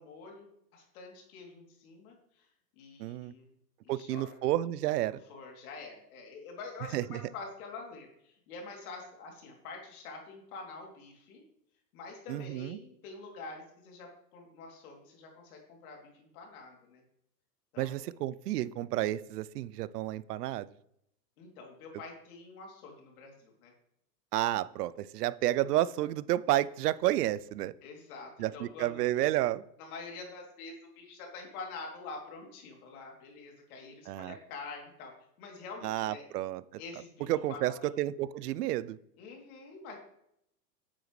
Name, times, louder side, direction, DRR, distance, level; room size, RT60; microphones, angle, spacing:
voice 1, 0.0-2.5 2.8-3.5 3.8-4.4 5.3-11.4 11.9-17.0 17.7-18.0 21.4-23.7 27.8-29.0 29.8-35.1 35.4-36.3 36.8-38.0 39.2-40.0, left 4 dB, 60° left, 1 dB, 3.1 m, -46 dB
voice 2, 3.0-3.3 3.9-5.2 6.9-7.2 12.3-12.8 17.8-20.7 24.3-27.7 28.4-29.6 34.1-34.4 35.8-36.6 37.3-39.0, right 14 dB, 70° right, 18 dB, 0.6 m, -31 dB
9.2 x 7.9 x 3.2 m, 0.75 s
hypercardioid pair, 125°, 50 cm